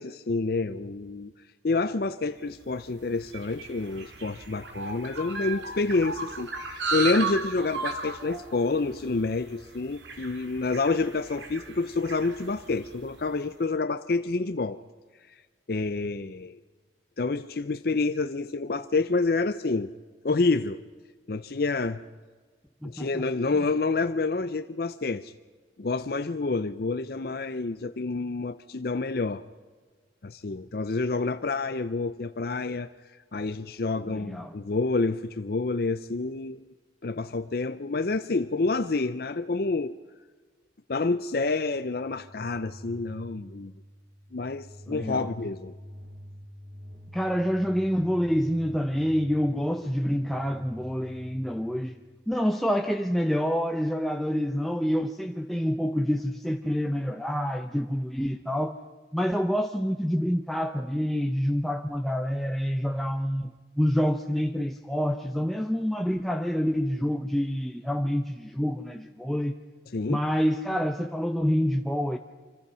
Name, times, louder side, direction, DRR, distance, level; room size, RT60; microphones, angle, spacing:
voice 1, 0.0-1.3 1.6-14.8 15.3-15.4 15.7-16.6 17.2-19.9 20.2-20.8 21.3-22.0 22.8-25.3 25.8-29.4 30.2-32.9 33.3-36.6 37.0-40.0 40.9-43.7 44.3-45.7 69.9-70.2, left 3 dB, 55° left, 0.6 m, -28 dB
sound 1, 2.6-13.2, right 4 dB, 80° right, 3.0 m, -36 dB
voice 2, 22.8-23.2 34.1-34.5 44.9-45.3 47.1-52.0 52.3-58.8 59.1-63.5 63.8-69.5 70.1-72.2, equal, ahead, 0.6 m, -27 dB
sound 2, 41.6-52.2, equal, 55° right, 5.5 m, -47 dB
26.0 x 25.5 x 5.6 m
head